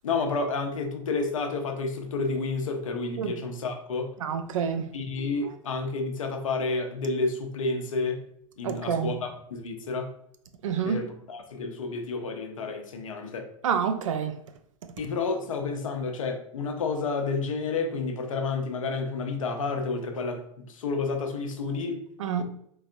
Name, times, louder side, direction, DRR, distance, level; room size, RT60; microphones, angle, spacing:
voice 1, 0.0-4.1 4.9-8.3 8.6-10.1 10.8-13.5 15.0-20.4 20.7-22.0, left 4 dB, 75° left, 0.7 m, -30 dB
voice 2, 4.2-4.9 8.6-9.2 10.6-11.0 13.6-14.4 22.2-22.4, right 7 dB, 70° right, 0.5 m, -28 dB
3.4 x 3.1 x 2.5 m
figure-of-eight pair, 95°, 17 cm